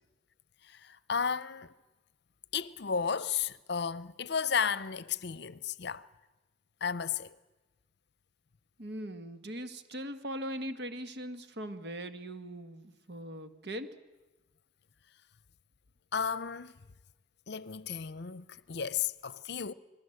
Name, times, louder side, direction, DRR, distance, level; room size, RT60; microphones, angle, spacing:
voice 1, 0.6-1.7 2.5-6.1 6.8-7.4 16.1-16.7 17.5-19.7, left 6 dB, 60° left, 0.7 m, -33 dB
voice 2, 8.8-13.9, equal, 55° right, 1.7 m, -40 dB
26.0 x 20.0 x 7.9 m
head